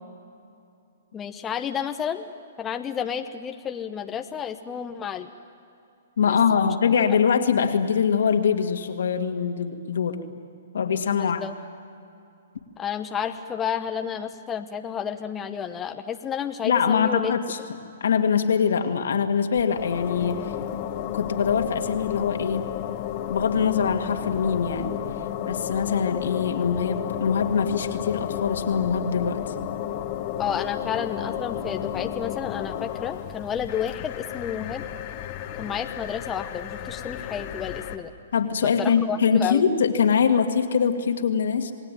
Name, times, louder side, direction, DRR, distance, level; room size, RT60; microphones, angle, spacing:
voice 1, 1.1-2.3 2.6-5.3 6.3-6.7 7.1-7.2 11.1-11.5 12.8-17.3 30.4-34.9 35.6-38.1 38.8-39.6, left 8 dB, 20° left, 5 dB, 1.0 m, -31 dB
voice 2, 6.2-10.3 10.7-11.4 16.6-17.6 18.0-20.8 21.1-22.7 23.3-24.9 25.5-29.5 38.3-41.7, left 6 dB, 75° left, 5 dB, 2.2 m, -23 dB
sound 1, 19.6-38.0, left 10 dB, 40° left, 1.6 m, -32 dB
28.5 x 19.0 x 9.2 m, 2.6 s
hypercardioid pair, 135°, 0 cm